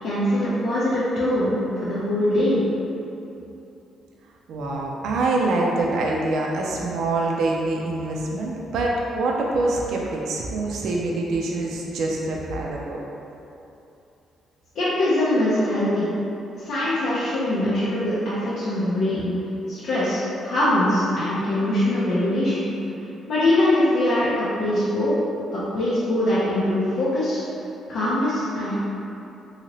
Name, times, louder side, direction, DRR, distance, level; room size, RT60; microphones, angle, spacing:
voice 1, 0.0-2.6 14.7-16.1 16.6-19.3 19.7-22.7 23.3-25.1 25.5-27.4 27.9-28.8, left 1 dB, 75° left, -10 dB, 0.6 m, -22 dB
voice 2, 4.5-13.0, right 2 dB, 75° right, -2 dB, 0.4 m, -25 dB
2.8 x 2.7 x 2.9 m, 2.8 s
cardioid pair, 90°, 0 cm